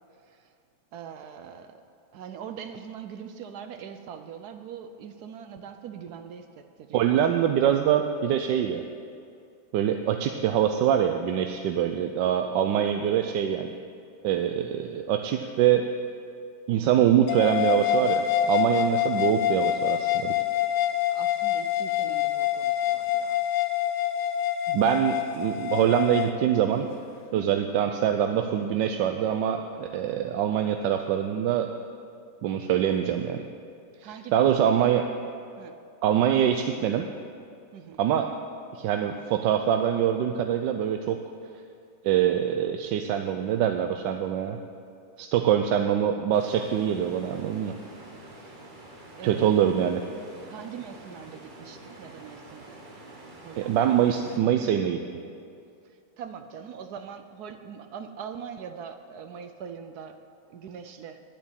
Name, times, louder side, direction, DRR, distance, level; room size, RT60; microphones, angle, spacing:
voice 1, 0.9-1.8 2.1-7.3 21.1-23.4 27.4-27.7 34.0-34.9 35.6-35.7 37.7-38.0 48.3-48.6 49.2-49.7 50.5-52.9 53.4-54.0 56.2-60.2 60.5-61.2, right 7 dB, 70° right, 8 dB, 1.1 m, -42 dB
voice 2, 6.9-8.8 9.7-13.7 14.2-15.9 16.7-20.3 24.7-26.9 27.3-31.7 32.4-33.4 34.0-35.1 36.0-37.1 38.0-38.3 38.7-41.2 42.0-44.6 45.2-47.7 49.2-50.0 53.5-55.0, right 9 dB, 90° right, 6 dB, 1.3 m, -24 dB
sound 1, 17.3-26.3, left 11 dB, 75° left, 1.4 m, -26 dB
sound 2, 46.3-54.4, right 1 dB, 30° right, 1.4 m, -47 dB
11.0 x 8.3 x 8.9 m, 2.5 s
omnidirectional pair, 1.9 m